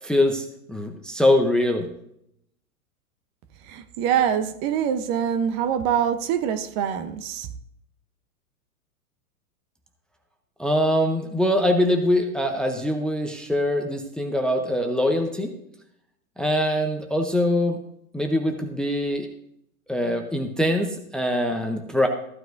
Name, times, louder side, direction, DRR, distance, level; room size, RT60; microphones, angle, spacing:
voice 1, 0.0-1.9 10.6-15.5 16.4-17.8 18.1-19.3 19.9-22.1, left 1 dB, ahead, 0.7 m, -23 dB
voice 2, 3.7-7.5, right 8 dB, 35° right, 0.9 m, -24 dB
14.5 x 9.0 x 2.6 m
hypercardioid pair, 115°, 44 cm